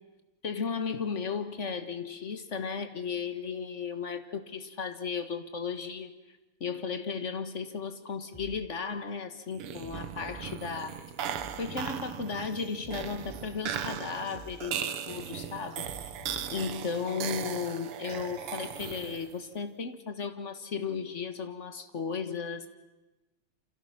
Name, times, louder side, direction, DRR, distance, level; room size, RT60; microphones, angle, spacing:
voice 1, 0.4-6.1 6.6-11.0 11.3-15.9 16.5-22.7, left 5 dB, 35° left, 9 dB, 1.6 m, -35 dB
sound 1, 8.3-8.5 9.1-9.3 9.8-11.6 12.1-12.3 12.8-14.6 15.1-15.3 15.8-17.3, right 2 dB, 15° left, 6.8 m, -50 dB
sound 2, 9.5-19.4, right 8 dB, 85° right, 2.1 m, -38 dB
29.5 x 26.5 x 5.9 m, 1.0 s
omnidirectional pair, 2.4 m